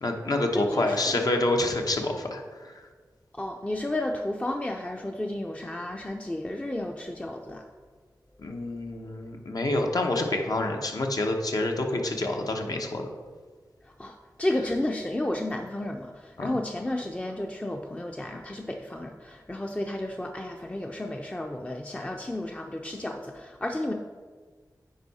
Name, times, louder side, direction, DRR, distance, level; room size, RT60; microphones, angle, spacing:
voice 1, 0.0-2.8 8.4-13.1 16.4-16.6, left 2 dB, 60° left, 3 dB, 1.0 m, -27 dB
voice 2, 0.5-1.2 3.3-7.6 14.0-23.9, left 1 dB, 15° left, 2 dB, 0.5 m, -32 dB
9.4 x 4.7 x 4.2 m, 1.5 s
cardioid pair, 55°, 7 cm